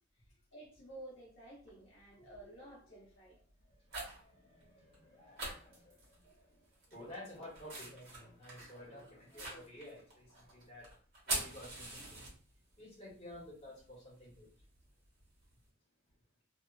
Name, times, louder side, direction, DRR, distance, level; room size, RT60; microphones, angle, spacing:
voice 1, 0.1-3.4, right 1 dB, 65° left, -6 dB, 0.9 m, -53 dB
sound 1, 0.8-0.9 1.6-2.0 2.4-2.7 3.5-4.3 4.6-4.7 4.9-5.0 5.4-6.4 6.7-12.8 13.1-15.6, right 2 dB, 55° right, 1.2 m, -44 dB
voice 2, 3.6-10.9 11.3-12.2 12.8-14.5, left 1 dB, 30° left, -6 dB, 1.3 m, -53 dB
2.7 x 2.2 x 2.3 m, 0.43 s
head